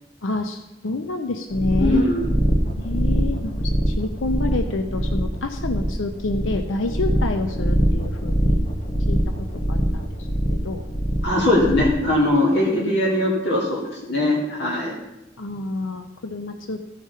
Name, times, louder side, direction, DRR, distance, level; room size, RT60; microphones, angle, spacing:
voice 1, 0.2-2.1 2.8-8.5 9.1-10.9 11.7-11.9 12.7-13.0 15.4-16.9, left 2 dB, 90° left, 6 dB, 0.6 m, -29 dB
sound 1, 1.5-12.1, equal, 35° left, 1.4 m, -23 dB
voice 2, 1.8-2.3 11.2-14.9, left 1 dB, 65° left, -3 dB, 2.2 m, -20 dB
14.0 x 5.0 x 5.4 m, 0.98 s
head